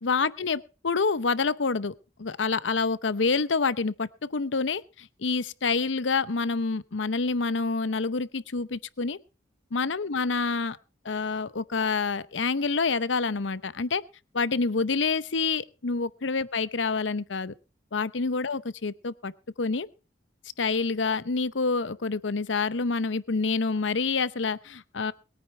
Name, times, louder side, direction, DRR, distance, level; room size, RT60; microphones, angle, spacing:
voice 1, 0.0-1.9 2.2-9.2 9.7-10.8 11.0-14.0 14.3-17.5 17.9-19.3 19.6-19.9 20.6-25.1, left 4 dB, 85° left, 17 dB, 0.8 m, -27 dB
21.5 x 9.4 x 4.4 m, 0.34 s
head